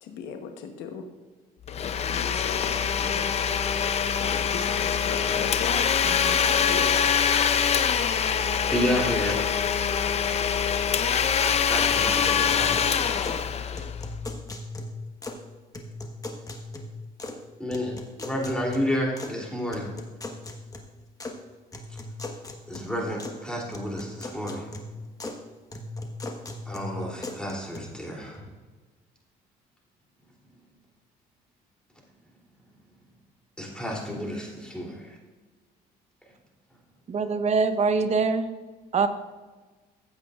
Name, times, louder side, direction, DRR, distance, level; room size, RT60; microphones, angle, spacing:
voice 1, 0.0-1.1 2.1-3.4 4.2-7.1, left 6 dB, 90° left, 1.1 m, -37 dB
Domestic sounds home sounds, 1.7-14.3, left 7 dB, 40° left, 0.6 m, -24 dB
voice 2, 8.7-9.6 11.7-13.3 17.6-19.9 22.7-24.6 26.7-28.4 33.6-35.1, equal, 5° left, 3.0 m, -31 dB
sound 1, 11.8-13.5 13.7-15.5 15.7-17.4 17.7-19.3 19.7-21.4 21.7-23.4 23.7-25.4 25.7-27.8, left 2 dB, 20° left, 1.3 m, -39 dB
voice 3, 37.1-38.5 38.9-39.1, right 4 dB, 40° right, 0.9 m, -23 dB
15.5 x 8.2 x 2.4 m
cardioid pair, 110°, 17 cm